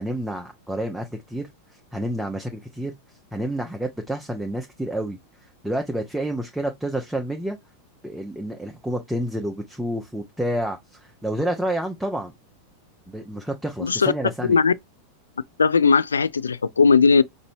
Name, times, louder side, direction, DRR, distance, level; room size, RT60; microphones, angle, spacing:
voice 1, 0.0-1.5 1.9-2.9 3.3-5.2 5.6-7.6 8.0-12.3 13.1-14.6, right 1 dB, 5° right, 0.7 m, -29 dB
voice 2, 13.8-14.1 14.5-14.7 15.6-17.2, left 5 dB, 75° left, 0.3 m, -18 dB
5.1 x 2.7 x 2.6 m
figure-of-eight pair, 90°, 0 cm